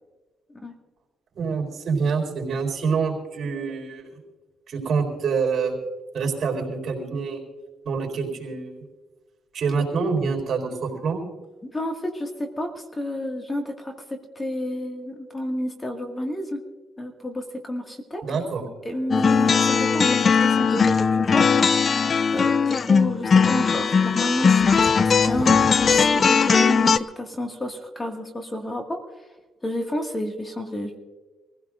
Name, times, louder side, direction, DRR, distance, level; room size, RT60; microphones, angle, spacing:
voice 1, 1.4-4.1 4.7-5.7 6.1-7.4 7.8-8.7 9.5-11.2 18.2-18.6, right 5 dB, 55° right, 2 dB, 4.2 m, -26 dB
voice 2, 11.7-16.6 17.0-18.2 18.9-21.7 22.3-29.0 29.6-30.9, left 1 dB, 20° left, 3 dB, 2.0 m, -30 dB
sound 1, 19.1-27.0, left 5 dB, 40° left, 0.5 m, -19 dB
25.0 x 16.0 x 2.6 m, 1.2 s
cardioid pair, 90°, 0 cm